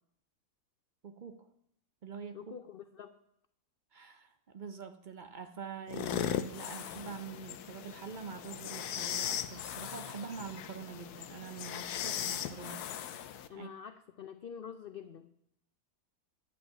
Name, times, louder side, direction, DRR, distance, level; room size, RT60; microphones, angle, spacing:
voice 1, 1.0-1.5 2.0-2.5 3.9-13.2 13.5-13.7, right 6 dB, 60° right, 8 dB, 0.5 m, -45 dB
voice 2, 2.3-3.2 13.5-15.3, left 7 dB, 70° left, 9 dB, 0.5 m, -46 dB
sound 1, 5.9-13.5, left 10 dB, 90° left, 1.2 m, -38 dB
10.5 x 5.9 x 7.5 m, 0.73 s
omnidirectional pair, 1.6 m